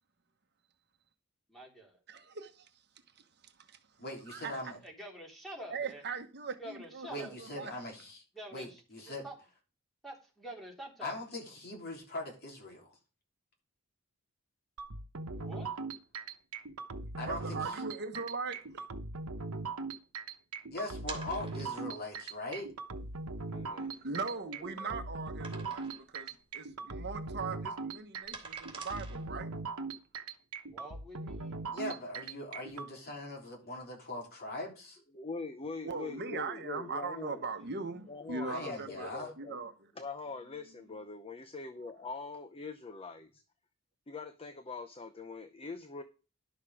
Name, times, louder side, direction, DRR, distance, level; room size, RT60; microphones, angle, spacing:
voice 1, 1.5-2.0 4.8-6.0 6.6-7.3 8.3-9.3 10.0-11.1 15.3-15.7 30.7-31.9 37.3-37.8, right 1 dB, ahead, 3.3 m, -47 dB
voice 2, 2.1-2.7 4.3-4.6 5.7-7.7 17.3-18.6 24.0-29.5 35.8-39.7, right 4 dB, 50° right, 1.2 m, -40 dB
voice 3, 4.0-4.8 7.1-8.2 8.5-9.3 11.0-12.9 17.2-17.8 20.7-22.7 31.7-35.0 38.4-39.3, left 1 dB, 50° left, 3.5 m, -41 dB
sound 1, 14.8-32.9, right 3 dB, 80° right, 1.1 m, -40 dB
sound 2, 21.1-22.0 22.7-22.8 23.2-23.3 23.8-24.8 25.4-26.2 26.5-26.7 27.0-29.6, right 4 dB, 25° right, 3.0 m, -48 dB
voice 4, 23.5-24.0 24.3-25.0 35.1-37.4 38.1-39.6 39.9-43.4 44.1-46.0, left 4 dB, 25° left, 0.7 m, -43 dB
11.5 x 6.6 x 4.9 m
head